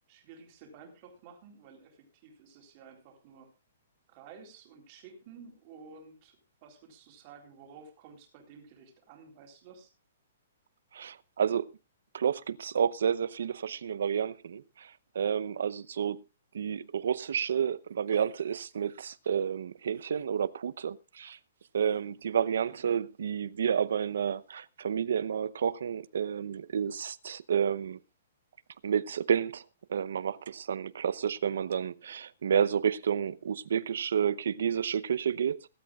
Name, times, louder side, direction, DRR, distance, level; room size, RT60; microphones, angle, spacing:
voice 1, 0.1-3.5 4.1-9.9 22.7-22.9, right 5 dB, 25° right, 3.9 m, -52 dB
voice 2, 10.9-11.7 12.1-16.2 16.5-21.4 21.7-28.0 28.8-29.6 29.9-35.7, right 8 dB, 65° right, 0.8 m, -30 dB
21.5 x 13.0 x 2.4 m
hypercardioid pair, 175°, 0 cm